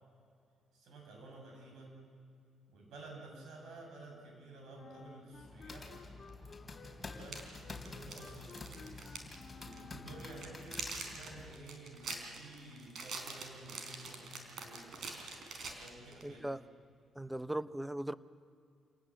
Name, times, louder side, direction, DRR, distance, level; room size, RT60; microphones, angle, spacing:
voice 1, 0.7-2.0 2.7-6.0 6.9-8.9 9.5-15.2 15.7-16.5, right 2 dB, 80° right, 7.5 m, -52 dB
Wind instrument woodwind instrument, 4.7-10.8, left 5 dB, 50° left, 2.1 m, -56 dB
sound 1, 5.3-11.6, left 3 dB, 20° left, 3.6 m, -49 dB
sound 2, 6.3-6.4 7.1-9.4 9.6-9.8 10.2-16.3, right 4 dB, 60° right, 4.3 m, -45 dB
voice 2, 16.2-16.6 17.2-18.1, right 1 dB, 5° right, 0.7 m, -38 dB
28.5 x 19.0 x 7.6 m
cardioid pair, 90°, 0 cm